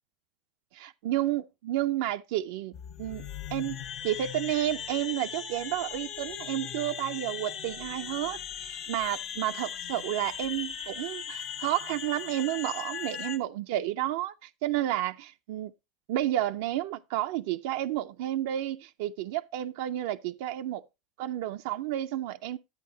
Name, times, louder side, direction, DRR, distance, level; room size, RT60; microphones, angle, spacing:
voice 1, 0.7-3.3 3.5-3.8 4.0-15.7 16.1-20.8 21.2-22.6, right 13 dB, 70° right, 0.4 m, -31 dB
sound 1, 2.7-13.4, left 8 dB, 60° left, 1.0 m, -38 dB
10.5 x 8.3 x 2.7 m
hypercardioid pair, 90°, 0 cm